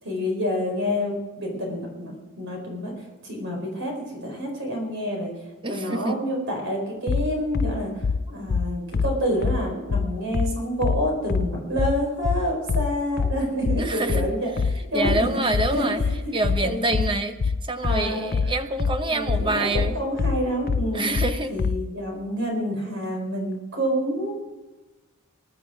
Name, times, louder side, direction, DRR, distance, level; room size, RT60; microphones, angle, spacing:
voice 1, 0.0-2.9 3.2-5.3 5.7-7.9 8.3-15.3 15.7-15.8 16.6-17.2 17.8-18.3 19.1-21.1 21.5-24.3, equal, 60° right, 1 dB, 4.5 m, -28 dB
voice 2, 5.6-6.2 13.8-14.3 14.9-16.0 16.3-20.0 20.9-21.6, right 2 dB, 25° right, 8 dB, 0.9 m, -26 dB
sound 1, 7.1-21.9, left 5 dB, 45° left, 0.4 m, -24 dB
21.0 x 11.5 x 4.8 m, 1.1 s
head